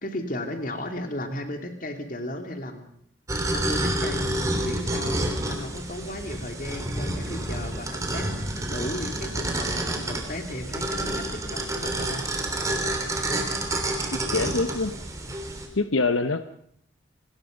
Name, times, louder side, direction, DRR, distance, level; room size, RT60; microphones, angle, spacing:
voice 1, 0.0-2.9 3.5-4.3 4.6-8.3 8.7-12.2, left 1 dB, 45° left, 5 dB, 3.0 m, -35 dB
sound 1, 3.3-15.7, right 1 dB, 15° right, 3.3 m, -29 dB
voice 2, 14.1-14.9 15.7-16.4, left 3 dB, 85° left, 10 dB, 1.1 m, -25 dB
27.5 x 20.5 x 5.3 m, 0.67 s
head